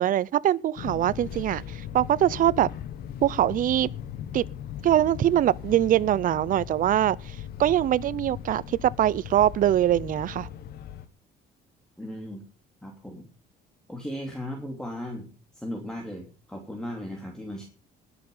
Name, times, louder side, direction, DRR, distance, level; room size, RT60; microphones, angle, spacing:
voice 1, 0.0-2.7 3.2-3.9 4.3-4.5 4.8-10.5, right 12 dB, 55° right, 0.6 m, -23 dB
Fixed-wing aircraft airplane, 0.8-11.1, left 10 dB, 70° left, 1.6 m, -38 dB
voice 2, 12.0-12.4 12.8-13.3 13.9-17.7, equal, 5° left, 3.0 m, -37 dB
20.0 x 6.9 x 5.5 m
cardioid pair, 110°, 17 cm